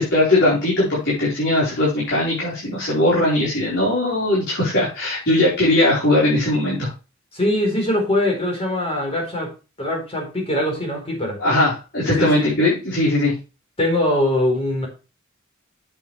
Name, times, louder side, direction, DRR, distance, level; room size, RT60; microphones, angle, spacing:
voice 1, 0.0-6.9 11.4-13.3, left 1 dB, 60° left, -7 dB, 4.5 m, -19 dB
voice 2, 7.3-9.5 9.8-11.4 12.2-12.5 13.8-14.9, left 1 dB, 30° left, 0 dB, 4.1 m, -22 dB
8.8 x 8.2 x 3.3 m, 0.31 s
head